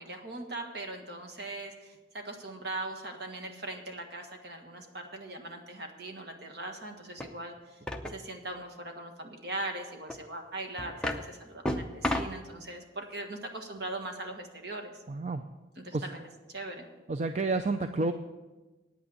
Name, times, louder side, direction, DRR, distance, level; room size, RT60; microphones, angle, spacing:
voice 1, 0.0-7.8 8.1-14.9 15.8-16.9, right 2 dB, 55° right, 4 dB, 1.5 m, -40 dB
sound 1, 7.2-7.3 7.9-8.2 10.1-10.2 10.8-11.2 11.6-12.4, left 1 dB, 5° left, 0.6 m, -32 dB
voice 2, 15.1-15.4 15.9-16.1 17.1-18.1, right 3 dB, 35° right, 8 dB, 0.4 m, -29 dB
9.3 x 8.7 x 8.0 m, 1.2 s
head